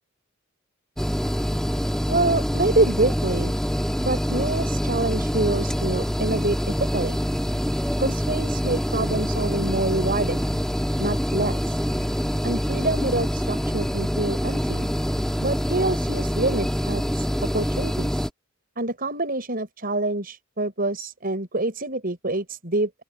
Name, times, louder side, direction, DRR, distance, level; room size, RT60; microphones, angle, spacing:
sound 1, 1.0-18.3, equal, ahead, 2.0 m, -25 dB
voice 1, 2.1-3.5 4.0-7.2 8.0-10.5 11.0-11.8 12.4-14.9 15.4-17.3 17.5-18.3 18.8-23.0, right 2 dB, 40° right, 7.2 m, -26 dB
open air
head